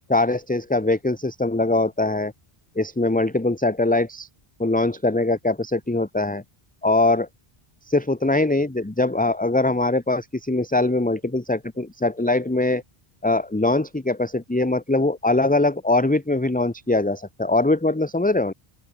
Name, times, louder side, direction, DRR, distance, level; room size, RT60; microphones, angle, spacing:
voice 1, 0.1-2.3 2.8-4.3 4.6-6.4 6.8-7.3 7.9-12.8 13.2-18.5, left 2 dB, 10° left, 0.8 m, -22 dB
open air
omnidirectional pair, 1.0 m